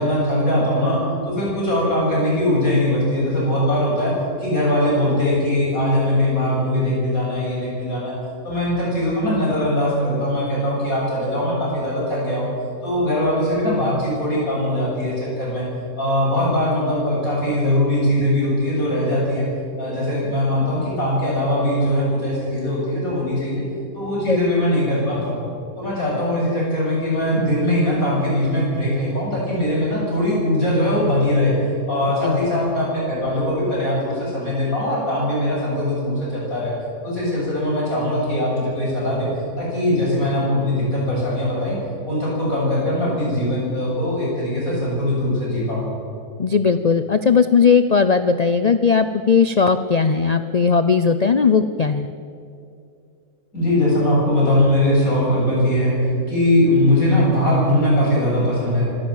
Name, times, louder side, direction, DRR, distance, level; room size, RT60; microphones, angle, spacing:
voice 1, 0.0-4.1 4.4-8.2 8.4-12.5 12.8-15.6 16.0-19.5 19.8-23.6 23.9-25.4 25.7-31.5 31.9-36.7 37.0-39.3 39.6-41.8 42.0-45.9 53.5-56.0 56.3-58.9, left 1 dB, 60° left, -4 dB, 8.0 m, -21 dB
voice 2, 46.4-52.1, left 5 dB, 75° left, 10 dB, 0.3 m, -17 dB
25.0 x 13.0 x 8.9 m, 2.5 s
omnidirectional pair, 1.7 m